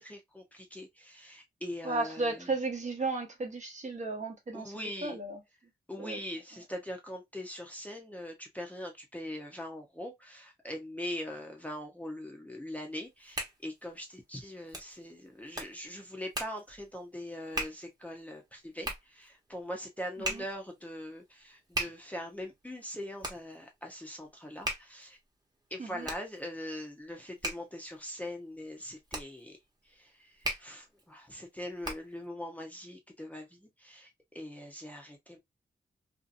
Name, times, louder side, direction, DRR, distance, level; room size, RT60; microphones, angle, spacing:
voice 1, 0.0-2.5 4.5-5.2 5.9-25.2 25.7-29.6 29.8-35.4, left 1 dB, 10° left, 0.7 m, -42 dB
voice 2, 1.8-4.7 5.0-5.4 6.0-6.2 20.3-20.4 25.8-26.1, right 3 dB, 45° right, 0.9 m, -34 dB
Hands, 12.9-32.3, right 1 dB, 20° right, 1.1 m, -41 dB
2.7 x 2.5 x 2.4 m
wide cardioid pair, 130°, 18 cm